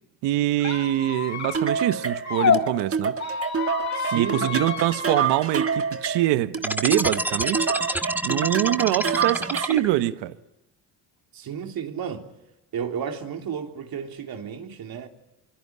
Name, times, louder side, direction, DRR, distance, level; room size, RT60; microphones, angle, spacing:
voice 1, 0.2-3.2 4.1-10.4, right 15 dB, 80° right, 1.1 m, -24 dB
Squeak, 0.6-2.6 3.1-5.3, left 6 dB, 40° left, 4.8 m, -28 dB
sound 1, 1.5-9.9, right 6 dB, 35° right, 1.5 m, -28 dB
voice 2, 3.9-4.5 11.3-12.3 12.7-15.1, right 7 dB, 60° right, 3.4 m, -32 dB
sound 2, 6.6-10.1, right 1 dB, 5° right, 1.4 m, -27 dB
25.5 x 24.0 x 9.5 m
supercardioid pair, 85°, 41 cm